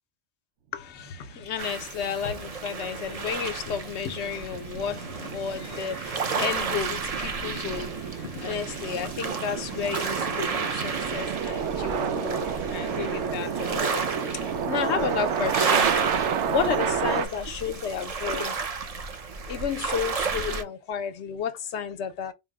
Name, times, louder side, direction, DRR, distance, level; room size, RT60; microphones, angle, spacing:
voice 1, 0.7-15.9 16.5-18.6 19.5-22.3, left 7 dB, 80° left, 1.0 m, -32 dB
sound 1, 1.2-17.3, right 7 dB, 85° right, 1.0 m, -31 dB
sound 2, 1.6-20.6, right 5 dB, 40° right, 0.6 m, -32 dB
4.3 x 2.0 x 3.5 m
omnidirectional pair, 1.2 m